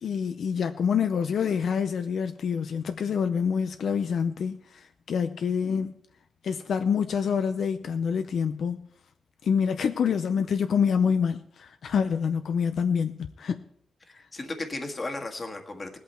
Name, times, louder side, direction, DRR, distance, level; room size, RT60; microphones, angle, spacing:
voice 1, 0.0-6.0 6.4-8.9 9.4-13.6, left 6 dB, 75° left, 0.6 m, -26 dB
voice 2, 14.1-16.0, left 2 dB, 30° left, 1.6 m, -35 dB
19.5 x 8.5 x 4.4 m
wide cardioid pair, 150°, 0 cm